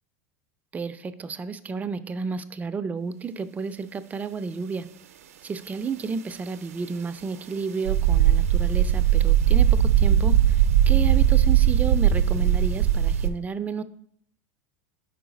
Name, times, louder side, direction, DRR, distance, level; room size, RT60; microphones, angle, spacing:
voice 1, 0.7-4.8 5.4-13.8, right 5 dB, 20° right, 12 dB, 0.4 m, -32 dB
sound 1, 7.9-13.3, right 10 dB, 80° right, 0.5 m, -19 dB
4.8 x 4.5 x 5.1 m, 0.67 s
hypercardioid pair, 100°, 8 cm